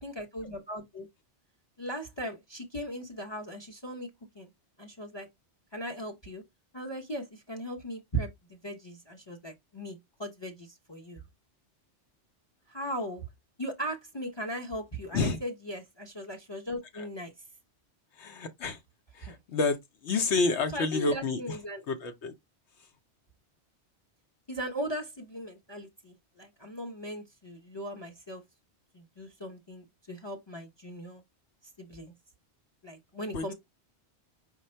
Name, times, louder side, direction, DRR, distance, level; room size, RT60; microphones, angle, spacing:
voice 1, 0.0-1.1 1.8-4.1 4.3-4.5 4.8-5.3 5.7-6.4 6.7-11.2 12.7-13.3 13.6-17.3 19.2-19.4 20.7-21.8 24.5-28.4 28.9-31.2 31.8-32.1 32.8-33.5, right 1 dB, 25° left, 0.7 m, -38 dB
voice 2, 18.2-18.8 19.1-19.8 20.0-21.6 21.9-22.3 33.3-33.5, left 3 dB, 80° left, 1.0 m, -29 dB
4.9 x 2.2 x 4.3 m
omnidirectional pair, 1.2 m